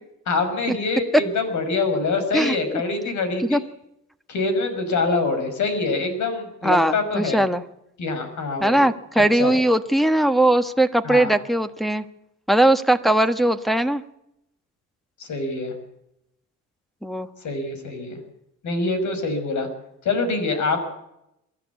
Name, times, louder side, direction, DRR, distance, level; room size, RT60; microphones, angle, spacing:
voice 1, 0.3-3.6 4.3-7.4 8.0-8.8 9.4-9.5 11.0-11.3 15.2-15.7 17.4-18.2 18.6-19.7 20.0-20.8, left 3 dB, 70° left, 7 dB, 6.1 m, -25 dB
voice 2, 6.6-7.6 8.6-12.0 12.5-14.0 17.0-17.3, right 1 dB, ahead, 7 dB, 1.5 m, -19 dB
23.0 x 13.5 x 8.4 m, 0.82 s
cardioid pair, 90°, 30 cm